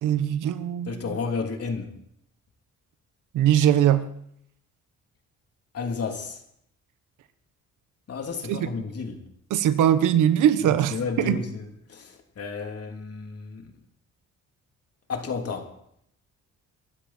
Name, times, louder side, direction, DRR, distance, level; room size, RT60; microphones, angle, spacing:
voice 1, 0.0-1.2 3.3-4.1 8.5-8.6 9.5-11.4, right 10 dB, 85° right, 1.3 m, -21 dB
voice 2, 0.8-1.9 5.7-6.4 8.1-9.2 10.6-13.7 15.1-15.7, left 5 dB, 50° left, 3.4 m, -32 dB
22.5 x 13.0 x 4.5 m
cardioid pair, 90°, 30 cm